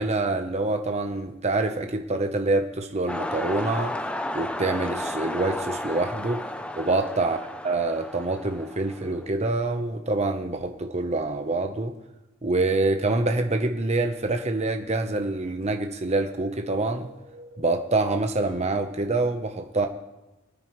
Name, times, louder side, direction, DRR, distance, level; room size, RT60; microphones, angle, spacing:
voice 1, 0.0-4.0 4.3-6.4 6.8-7.4 7.6-11.9 12.4-17.1 17.6-19.9, right 2 dB, 35° right, 5 dB, 0.9 m, -26 dB
sound 1, 3.1-9.3, left 1 dB, 5° left, 0.6 m, -33 dB
sound 2, 8.9-9.8 10.1-11.3 12.7-13.7 14.1-15.2 16.7-17.8, equal, 55° right, 4.2 m, -49 dB
25.5 x 9.4 x 3.2 m, 1.0 s
head